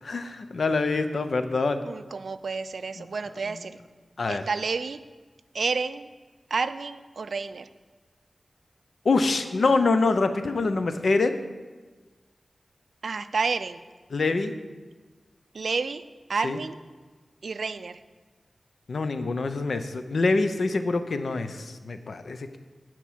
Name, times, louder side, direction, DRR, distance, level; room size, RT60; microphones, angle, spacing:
voice 1, 0.0-1.8 2.9-3.1 3.4-3.7 4.2-4.4 9.0-11.4 14.1-14.5 16.4-16.6 18.9-22.6, left 3 dB, 75° left, 9 dB, 0.6 m, -25 dB
voice 2, 1.8-3.7 4.3-5.0 5.5-6.1 6.5-7.7 13.0-13.8 15.5-16.0 16.3-16.8 17.4-18.0, right 4 dB, 75° right, 13 dB, 0.4 m, -30 dB
10.0 x 4.5 x 7.4 m, 1.3 s
wide cardioid pair, 80°, 0 cm